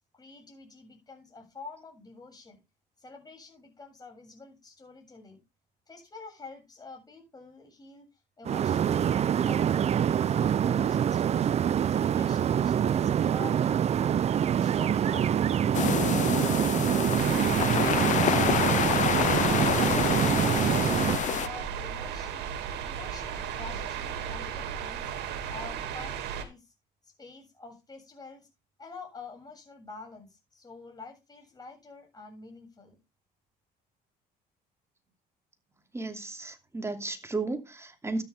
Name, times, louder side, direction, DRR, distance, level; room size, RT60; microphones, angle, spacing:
voice 1, 0.1-2.6 3.0-5.4 5.9-8.1 8.4-11.5 11.9-14.2 14.6-16.5 19.5-22.5 22.8-25.1 25.5-26.7 27.0-28.5 28.8-33.0, left 3 dB, 25° left, 7.3 m, -48 dB
sound 1, 8.5-21.2, right 9 dB, 40° right, 0.5 m, -25 dB
sound 2, 15.7-21.5, left 11 dB, 45° left, 0.5 m, -28 dB
sound 3, 17.2-26.4, right 8 dB, 85° right, 2.5 m, -35 dB
voice 2, 35.9-38.2, right 3 dB, 15° right, 2.7 m, -34 dB
13.0 x 9.8 x 3.6 m
cardioid pair, 110°, 17 cm